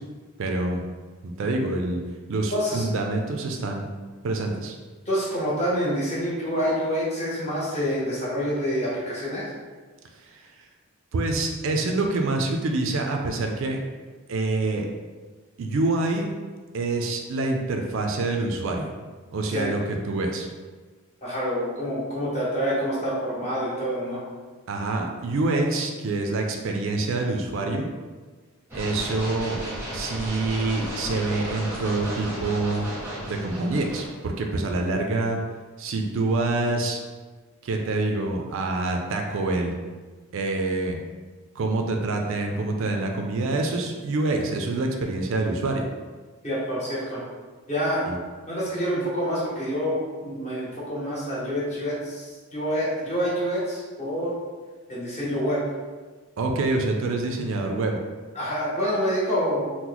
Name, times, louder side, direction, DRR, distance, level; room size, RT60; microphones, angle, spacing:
voice 1, 0.4-0.8 1.2-2.0 2.3-3.9 4.2-4.7 10.2-10.5 11.1-13.8 14.3-14.9 15.6-16.3 16.7-18.9 19.3-20.5 24.7-27.9 28.7-29.6 29.9-32.9 33.3-35.4 35.8-37.0 37.6-39.7 40.3-41.0 41.6-45.8 48.1-48.2 56.4-58.0, right 2 dB, 60° right, 2 dB, 0.3 m, -26 dB
voice 2, 2.5-2.8 5.1-9.5 19.5-19.7 21.2-24.2 46.4-47.2 47.7-48.1 48.5-54.3 54.9-55.6 58.3-59.7, equal, 30° left, -7 dB, 0.9 m, -27 dB
sound 1, 28.7-34.1, equal, 10° right, 0.7 m, -34 dB
2.9 x 2.1 x 3.8 m, 1.4 s
head